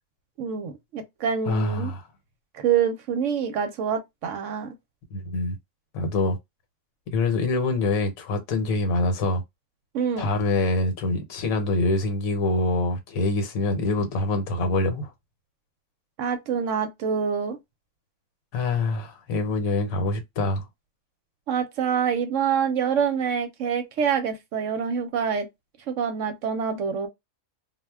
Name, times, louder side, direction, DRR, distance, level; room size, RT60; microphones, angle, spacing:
voice 1, 0.4-1.9 2.5-4.7 9.9-10.3 16.2-17.6 21.5-25.5 25.9-27.1, right 7 dB, 65° right, 0.8 m, -26 dB
voice 2, 1.5-2.0 5.1-5.6 5.9-6.4 7.1-9.4 10.2-15.1 18.5-20.7, left 2 dB, 70° left, 1.1 m, -25 dB
2.4 x 2.1 x 3.3 m
omnidirectional pair, 1.5 m